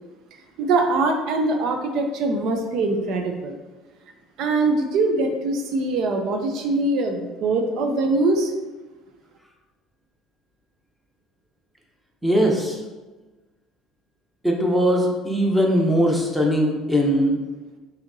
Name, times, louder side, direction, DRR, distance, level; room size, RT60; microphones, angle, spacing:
voice 1, 0.6-3.6 4.4-8.5, right 2 dB, 65° right, 4 dB, 0.4 m, -22 dB
voice 2, 12.2-12.8 14.4-17.4, equal, 5° right, -1 dB, 0.8 m, -20 dB
5.7 x 2.7 x 2.6 m, 1.2 s
cardioid pair, 110°, 0 cm